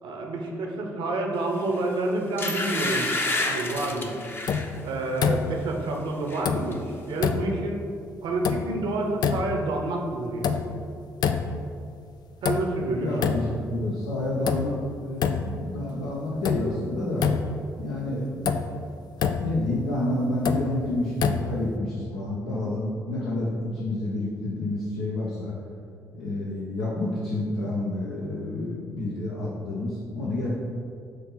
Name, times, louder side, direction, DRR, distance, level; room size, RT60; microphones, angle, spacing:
voice 1, 0.0-3.1 3.4-4.2 4.8-7.8 8.2-10.7 12.4-13.1, right 2 dB, 60° right, 1 dB, 0.9 m, -28 dB
sound 1, 1.7-1.9 2.4-4.7 5.2-5.4 5.7-6.4 6.7-6.8, left 2 dB, 25° left, 0.8 m, -29 dB
sound 2, 4.5-4.8 5.2-5.7 6.4-6.9 7.2-7.7 8.4-8.9 9.2-9.7 10.4-10.9 11.2-11.8 12.4-12.9 13.2-13.7 14.5-14.8 15.2-15.7 16.4-16.8 17.2-17.7 18.5-18.8 19.2-19.6 20.4-20.8 21.2-21.7, left 6 dB, 50° left, 0.4 m, -27 dB
voice 2, 12.9-14.8 15.0-17.3 17.8-18.6 19.4-25.5 26.1-30.5, left 1 dB, 75° left, -6 dB, 0.9 m, -29 dB
6.4 x 2.9 x 5.6 m, 2.3 s
figure-of-eight pair, 45°, 9 cm